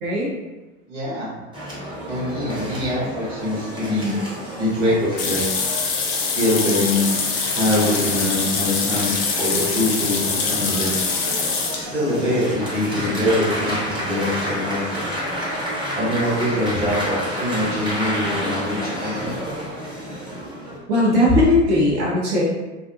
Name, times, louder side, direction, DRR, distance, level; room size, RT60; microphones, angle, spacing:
voice 1, 0.0-0.3 20.9-22.4, left 1 dB, 45° right, -6 dB, 0.8 m, -18 dB
voice 2, 0.9-1.3 2.1-4.1 4.6-5.5 6.2-7.2 7.5-11.1 11.8-15.1 15.9-19.3, left 1 dB, 75° right, -8 dB, 1.1 m, -23 dB
sound 1, 1.5-20.8, equal, 15° right, 0.8 m, -30 dB
sound 2, 5.2-11.8, left 4 dB, 40° left, 0.4 m, -24 dB
2.5 x 2.0 x 2.6 m, 1.1 s
figure-of-eight pair, 75°, 37 cm